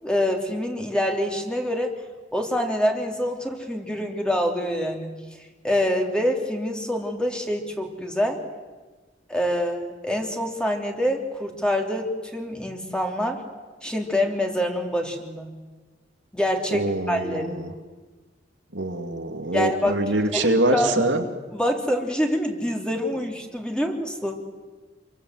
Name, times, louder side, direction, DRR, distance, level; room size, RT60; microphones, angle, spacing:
voice 1, 0.0-2.0 2.3-5.1 5.6-8.4 9.3-13.4 13.8-15.5 16.3-17.6 19.5-20.0 20.3-21.1 21.5-24.4, equal, 5° left, 2 dB, 3.2 m, -26 dB
voice 2, 16.7-17.7 18.7-21.2, right 2 dB, 75° right, 5 dB, 2.3 m, -24 dB
27.5 x 24.0 x 7.9 m, 1.3 s
head